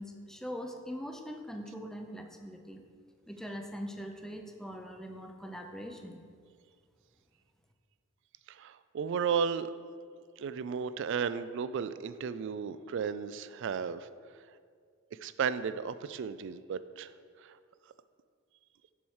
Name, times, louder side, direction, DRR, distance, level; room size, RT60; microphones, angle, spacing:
voice 1, 0.0-2.8 3.3-6.2, equal, ahead, 4 dB, 0.5 m, -42 dB
voice 2, 8.5-9.7 10.4-14.1 15.2-17.1 17.4-17.6, right 6 dB, 60° right, 14 dB, 0.3 m, -34 dB
7.0 x 4.6 x 6.4 m, 2.1 s
head